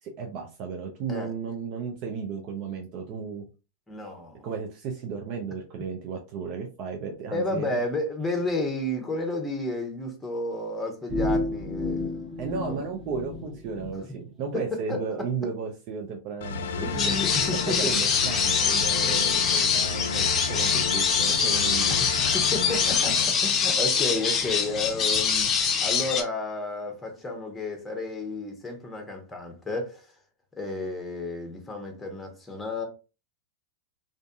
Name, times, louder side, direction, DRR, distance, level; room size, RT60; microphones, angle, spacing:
voice 1, 0.0-3.4 4.4-7.8 12.4-17.1 17.6-21.9, right 5 dB, 50° right, 0.5 m, -34 dB
voice 2, 3.9-4.5 7.3-12.2 12.7-12.8 14.5-15.0 16.8-17.9 19.1-19.4 22.3-30.0 30.6-32.8, left 2 dB, 10° left, 0.9 m, -32 dB
sound 1, 11.1-13.9, left 2 dB, 15° right, 1.0 m, -31 dB
sound 2, 16.4-23.3, left 5 dB, 75° left, 0.3 m, -32 dB
sound 3, 17.0-26.2, left 6 dB, 30° left, 0.6 m, -24 dB
2.5 x 2.5 x 2.3 m
hypercardioid pair, 105°, 0 cm